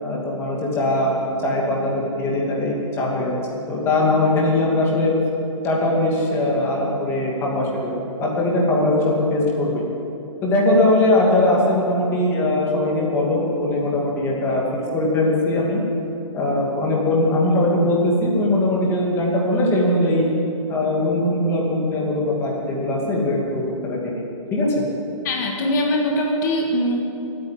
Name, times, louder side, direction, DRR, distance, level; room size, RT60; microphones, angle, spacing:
voice 1, 0.0-5.1 5.6-9.0 9.3-9.8 10.4-14.6 14.9-15.8 16.3-20.3 20.7-24.0 24.5-24.7, left 1 dB, 15° left, -3 dB, 2.5 m, -20 dB
voice 2, 25.2-27.0, left 1 dB, 35° left, 1 dB, 2.0 m, -22 dB
16.5 x 9.4 x 8.8 m, 2.8 s
hypercardioid pair, 165°, 17 cm